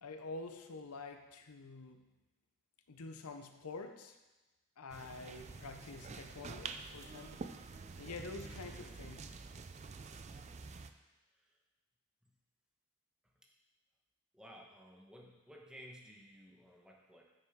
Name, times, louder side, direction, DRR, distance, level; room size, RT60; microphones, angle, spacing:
voice 1, 0.0-2.1 2.9-4.2 4.8-7.4 8.0-9.3, left 3 dB, 85° left, 6 dB, 0.7 m, -47 dB
sound 1, 4.9-10.9, right 4 dB, 30° right, 0.4 m, -48 dB
voice 2, 14.3-17.2, equal, 5° right, -1 dB, 1.0 m, -56 dB
9.3 x 7.5 x 3.7 m, 1.1 s
head